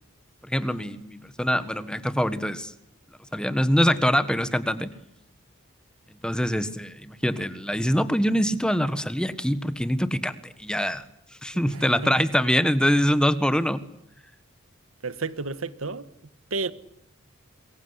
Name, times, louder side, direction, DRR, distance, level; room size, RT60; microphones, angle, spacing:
voice 1, 0.4-2.7 3.3-4.9 6.2-11.0 11.4-13.8, equal, 5° left, 1.5 m, -24 dB
voice 2, 11.7-12.1 15.0-16.1 16.5-16.7, right 3 dB, 90° right, 1.6 m, -31 dB
26.5 x 22.0 x 9.8 m
head